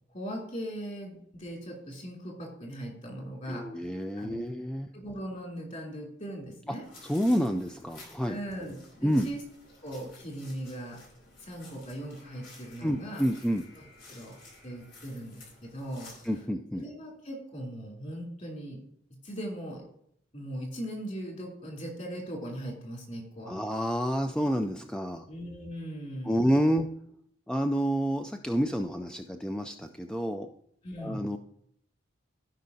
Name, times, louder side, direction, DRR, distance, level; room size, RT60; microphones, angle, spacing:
voice 1, 0.1-3.7 4.2-4.5 4.9-6.9 8.3-9.4 9.8-11.0 11.4-13.2 13.8-14.4 14.6-16.1 16.8-18.8 19.2-19.8 20.3-23.5 25.3-26.6 30.8-31.3, equal, 45° left, -1 dB, 2.9 m, -39 dB
voice 2, 3.5-4.9 7.1-8.4 9.0-9.3 12.8-13.6 16.2-16.8 23.5-25.2 26.2-26.9 27.5-30.5 31.0-31.4, equal, 5° left, 5 dB, 0.3 m, -29 dB
sound 1, 6.8-16.5, left 2 dB, 90° left, 2.9 m, -53 dB
15.5 x 5.3 x 2.7 m, 0.70 s
head